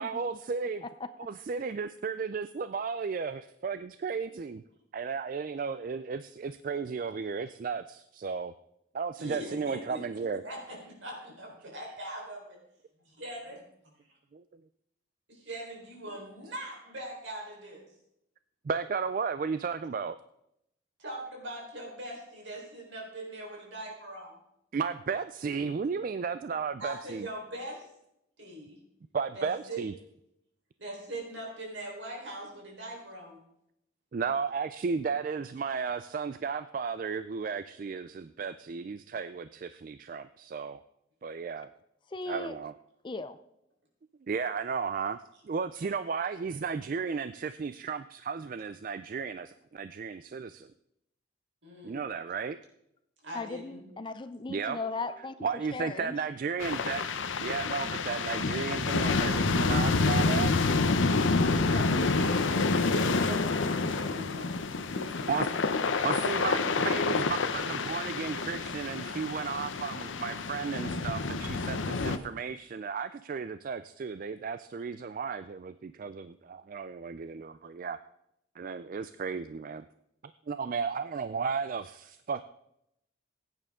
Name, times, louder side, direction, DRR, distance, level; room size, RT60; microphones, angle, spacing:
voice 1, 0.0-0.8 1.3-4.6 4.9-8.5 8.9-10.4 18.6-20.2 24.7-27.3 29.1-29.9 34.1-40.8 41.2-41.7 42.3-42.7 44.3-45.2 45.4-50.7 51.8-52.6 54.5-54.8 55.4-57.0 57.4-60.5 64.3-64.4 65.3-65.5 66.0-78.0 78.6-79.8 80.5-82.4, right 5 dB, 45° right, 12 dB, 0.3 m, -34 dB
voice 2, 9.2-12.6 13.2-13.6 15.5-17.8 21.0-24.4 26.8-27.9 28.4-28.8 29.3-29.8 30.8-33.4 51.6-52.0 53.2-53.8 61.7-64.5 64.9-65.3, right 1 dB, 70° right, -1 dB, 4.1 m, -41 dB
voice 3, 42.1-42.6 43.0-43.4 53.3-56.1, left 3 dB, 25° left, 12 dB, 0.4 m, -37 dB
sound 1, 56.6-72.2, left 3 dB, 75° left, 0.7 m, -28 dB
16.0 x 9.2 x 3.7 m, 0.79 s
head